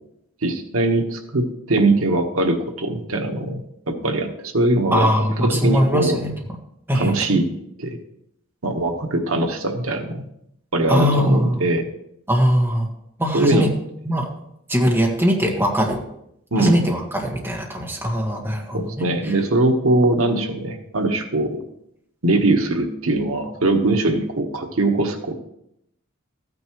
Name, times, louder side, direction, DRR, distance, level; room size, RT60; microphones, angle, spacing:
voice 1, 0.4-3.6 3.9-5.1 5.4-6.2 6.9-7.5 7.8-8.0 8.6-10.2 10.7-11.8 13.3-13.7 16.5-16.8 18.7-21.6 22.2-25.3, right 2 dB, 90° right, 5 dB, 1.2 m, -21 dB
voice 2, 4.9-6.3 6.9-7.1 10.9-11.6 12.3-12.9 13.2-13.7 14.0-14.2 14.7-16.0 16.6-19.3, equal, 10° right, -1 dB, 1.6 m, -21 dB
14.0 x 9.4 x 3.1 m, 0.77 s
head